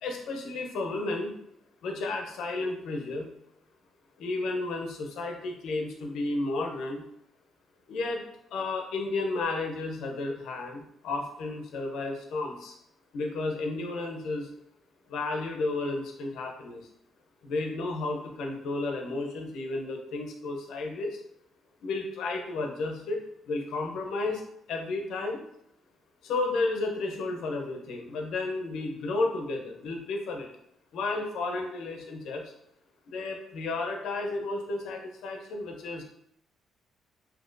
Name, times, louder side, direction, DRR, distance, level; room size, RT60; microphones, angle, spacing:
voice 1, 0.0-1.3 1.8-3.3 4.2-7.1 7.9-8.2 8.5-12.8 13.1-14.5 15.1-16.9 17.4-21.2 21.8-24.4 24.7-25.4 26.2-30.5 30.9-32.5 33.1-36.0, left 3 dB, 80° left, 2 dB, 0.6 m, -32 dB
3.7 x 2.8 x 2.5 m, 0.75 s
cardioid pair, 90°, 0 cm